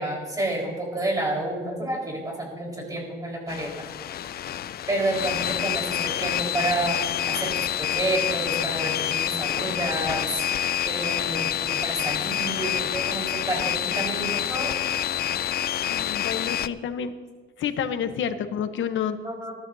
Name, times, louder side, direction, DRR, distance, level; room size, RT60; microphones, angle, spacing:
voice 1, 0.0-3.7 4.9-10.4 10.8-14.8 19.2-19.5, right 1 dB, 15° right, -1 dB, 4.5 m, -29 dB
sound 1, 3.5-16.7, left 11 dB, 50° left, 0.4 m, -27 dB
voice 2, 15.9-17.1 17.6-19.2, left 8 dB, 70° left, 9 dB, 1.0 m, -29 dB
21.0 x 12.5 x 2.7 m, 1.5 s
cardioid pair, 115°, 20 cm